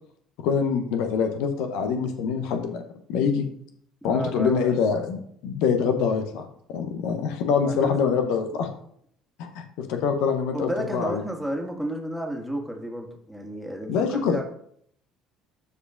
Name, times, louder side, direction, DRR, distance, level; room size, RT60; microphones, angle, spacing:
voice 1, 0.4-2.8 3.1-3.5 4.0-6.5 6.7-8.7 9.4-11.2 13.9-14.4, left 6 dB, 60° left, 5 dB, 0.8 m, -25 dB
voice 2, 4.0-4.9 7.5-7.9 10.5-14.4, equal, ahead, 1 dB, 1.9 m, -32 dB
13.0 x 4.9 x 2.5 m, 0.66 s
figure-of-eight pair, 55°, 0 cm